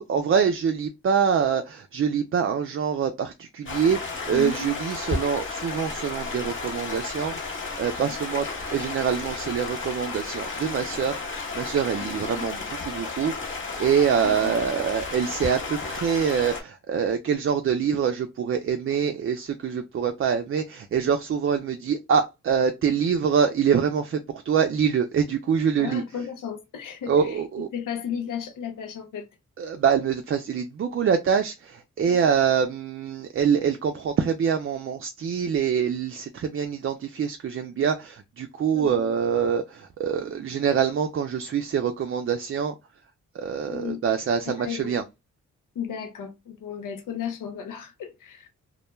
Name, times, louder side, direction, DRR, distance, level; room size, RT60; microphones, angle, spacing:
voice 1, 0.0-26.0 27.1-27.7 29.6-42.7 43.3-45.0, right 7 dB, 45° right, 0.4 m, -25 dB
Stream, 3.7-16.6, left 4 dB, 40° left, 0.9 m, -33 dB
voice 2, 4.3-4.7 12.0-12.5 14.1-14.6 25.8-27.4 27.7-29.3 32.0-32.3 38.7-39.1 43.7-44.0 44.4-45.0 45.7-48.5, left 8 dB, 75° left, 0.6 m, -34 dB
2.2 x 2.1 x 3.0 m
cardioid pair, 60°, 31 cm